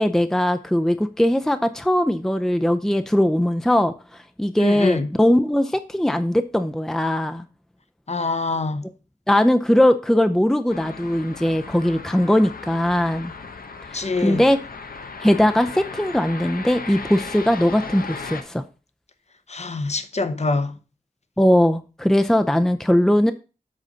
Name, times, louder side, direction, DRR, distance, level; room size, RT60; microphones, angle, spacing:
voice 1, 0.0-3.9 4.4-7.4 9.3-13.3 13.9-14.6 15.2-18.6 21.4-23.3, left 1 dB, 5° left, 0.5 m, -20 dB
voice 2, 4.6-5.1 8.1-8.9 13.9-14.4 19.5-20.8, left 3 dB, 50° left, 0.9 m, -24 dB
sound 1, 10.7-18.4, left 4 dB, 90° left, 0.9 m, -36 dB
7.6 x 4.1 x 6.3 m
wide cardioid pair, 55°, 15 cm